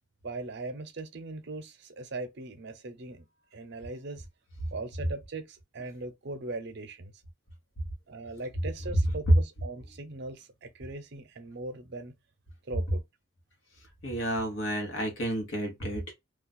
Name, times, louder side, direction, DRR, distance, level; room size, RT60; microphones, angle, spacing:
voice 1, 0.2-3.3 3.5-4.3 4.7-7.1 8.1-12.1 12.7-13.0, right 2 dB, 60° right, 0.6 m, -40 dB
voice 2, 14.0-16.1, right 1 dB, 80° left, 1.1 m, -28 dB
2.4 x 2.4 x 4.0 m
head